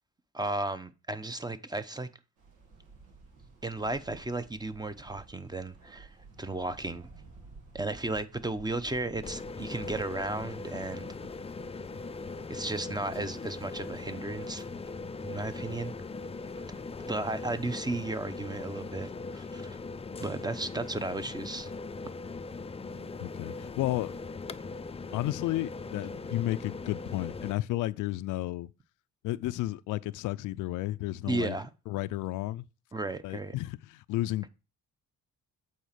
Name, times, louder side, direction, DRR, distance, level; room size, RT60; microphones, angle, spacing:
voice 1, 0.3-2.1 3.6-7.1 7.7-11.1 12.5-14.7 15.2-15.9 17.1-19.8 20.2-21.7 31.3-31.7 32.9-33.5, right 2 dB, 15° right, 0.8 m, -34 dB
sound 1, 2.4-17.0, right 4 dB, 85° right, 2.5 m, -55 dB
sound 2, 9.2-27.5, left 3 dB, 20° left, 0.5 m, -40 dB
voice 2, 23.2-24.2 25.1-28.7 29.2-31.6 31.9-32.6 33.2-34.5, left 16 dB, 85° left, 0.5 m, -32 dB
8.6 x 4.3 x 6.7 m
cardioid pair, 90°, 30 cm